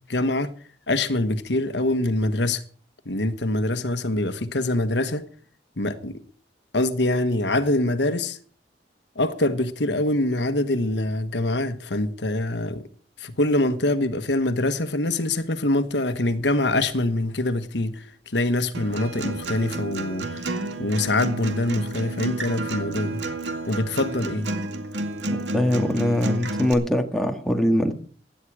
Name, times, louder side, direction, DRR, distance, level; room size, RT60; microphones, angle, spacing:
voice 1, 0.1-0.5 0.9-2.6 3.0-5.2 5.8-6.1 6.7-8.4 9.1-12.9 13.2-23.2 23.7-24.5, left 2 dB, 80° left, 1.3 m, -24 dB
Acoustic guitar, 18.7-26.7, right 2 dB, 90° right, 2.2 m, -31 dB
voice 2, 25.3-27.9, left 1 dB, ahead, 1.7 m, -22 dB
16.5 x 11.5 x 4.9 m
head